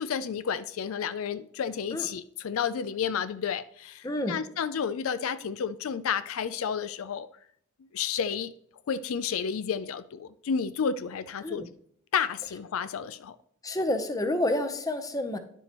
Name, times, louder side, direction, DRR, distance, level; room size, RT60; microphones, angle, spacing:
voice 1, 0.0-7.3 7.9-8.5 8.9-11.6 12.1-13.4, left 7 dB, 75° left, 0.4 m, -31 dB
voice 2, 4.0-4.4 11.4-11.7 13.6-15.4, left 1 dB, 15° left, 0.7 m, -29 dB
10.5 x 6.8 x 3.0 m
head